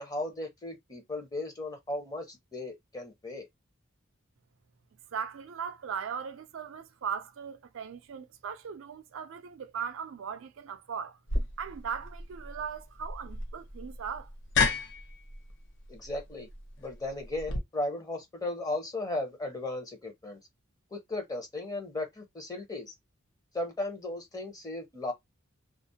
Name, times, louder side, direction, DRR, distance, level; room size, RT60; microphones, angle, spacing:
voice 1, 0.0-3.5 15.9-16.5 16.8-20.4 20.9-22.9 23.5-25.1, left 2 dB, 20° left, 0.7 m, -36 dB
voice 2, 5.1-11.2 11.6-14.3, right 7 dB, 75° right, 0.4 m, -38 dB
sound 1, 11.3-17.6, left 4 dB, 60° left, 0.6 m, -33 dB
2.4 x 2.0 x 2.7 m
head